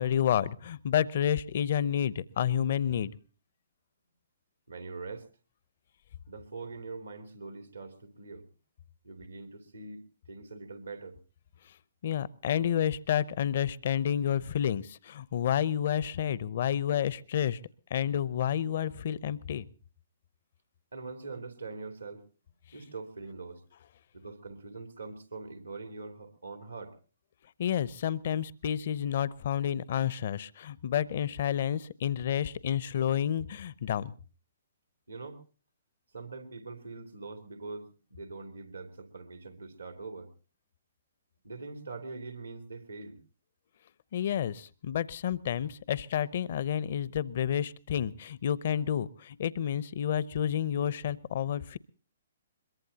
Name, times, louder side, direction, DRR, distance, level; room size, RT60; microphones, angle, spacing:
voice 1, 0.0-3.1 12.0-17.6 17.9-19.7 27.6-34.1 44.1-51.8, left 9 dB, 55° left, 20 dB, 0.7 m, -30 dB
voice 2, 4.7-5.3 6.3-8.5 9.0-10.0 10.3-11.2 20.9-22.2 22.7-23.6 24.1-27.0 35.1-35.4 36.1-40.3 41.4-43.2, right 3 dB, 90° right, 6 dB, 2.9 m, -43 dB
22.5 x 22.0 x 2.8 m, 0.38 s
figure-of-eight pair, 125°, 0 cm